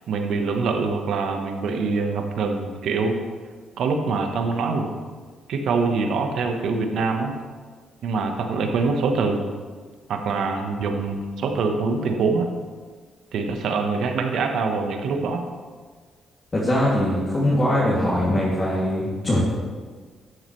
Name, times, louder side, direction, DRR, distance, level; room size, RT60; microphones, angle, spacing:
voice 1, 0.0-3.2 3.8-4.9 5.5-7.3 8.0-9.4 10.1-12.5 13.3-15.4, right 4 dB, 75° right, 4 dB, 1.1 m, -24 dB
voice 2, 16.5-19.4, left 1 dB, 30° left, -8 dB, 2.5 m, -21 dB
13.0 x 7.6 x 3.2 m, 1.5 s
cardioid pair, 90°, 0 cm